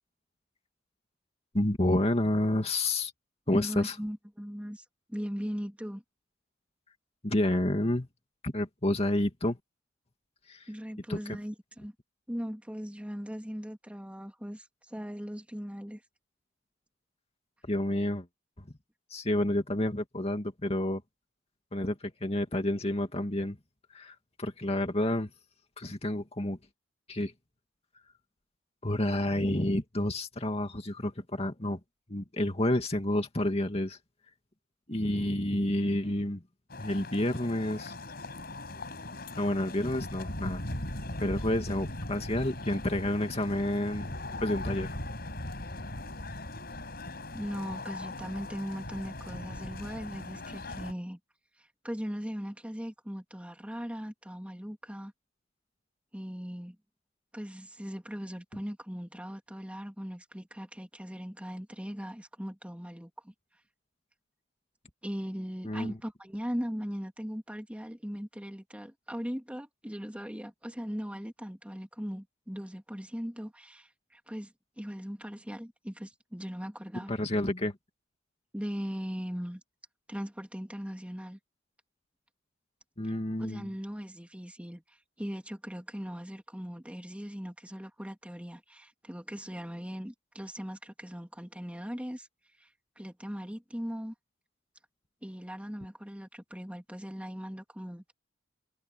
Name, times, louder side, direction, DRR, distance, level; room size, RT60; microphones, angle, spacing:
voice 1, 1.5-3.1 3.5-4.0 7.2-8.1 8.4-9.6 10.5-10.7 11.1-11.2 17.6-18.3 18.6-18.7 19.1-21.0 21.7-23.6 23.9-25.3 25.8-26.6 27.1-27.3 28.8-31.8 32.1-34.0 34.9-36.4 36.8-37.9 39.4-40.6 41.2-44.9 65.6-66.0 77.1-77.8 83.0-83.7, left 1 dB, 30° left, 2.3 m, -29 dB
voice 2, 3.5-4.8 5.1-6.0 10.7-11.9 12.3-16.0 47.3-51.2 51.8-55.1 56.1-56.8 57.3-63.3 65.0-77.1 78.5-79.6 80.1-81.4 83.0-83.1 83.4-92.3 92.6-92.7 93.0-94.1 95.2-98.1, equal, 5° right, 3.3 m, -39 dB
sound 1, 36.7-50.9, left 1 dB, 55° left, 7.3 m, -39 dB
head